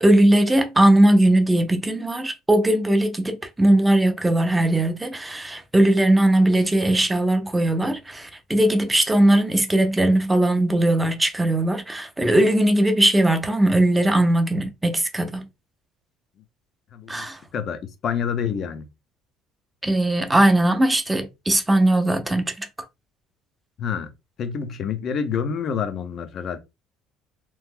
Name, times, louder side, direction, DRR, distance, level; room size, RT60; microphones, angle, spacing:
voice 1, 0.0-15.5 17.1-17.4 19.8-22.7, right 1 dB, 10° right, 0.6 m, -19 dB
voice 2, 16.9-17.3 17.5-18.8 23.8-24.1 24.4-26.6, left 7 dB, 45° left, 0.7 m, -27 dB
3.0 x 2.0 x 3.5 m
cardioid pair, 120°, 0 cm